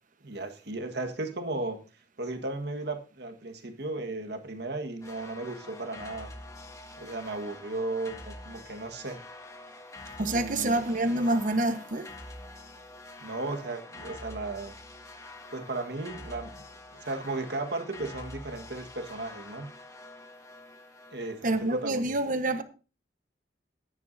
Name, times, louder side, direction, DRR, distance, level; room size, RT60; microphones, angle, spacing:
voice 1, 0.2-1.8 2.2-6.3 7.0-9.2 10.2-10.8 13.2-14.7 15.5-16.5 17.0-19.7 21.1-22.2, right 2 dB, 65° right, 1.6 m, -35 dB
sound 1, 5.0-21.9, left 2 dB, 20° left, 1.6 m, -46 dB
voice 2, 10.2-12.1 21.4-22.6, right 1 dB, 50° right, 1.2 m, -27 dB
15.0 x 10.5 x 2.7 m
head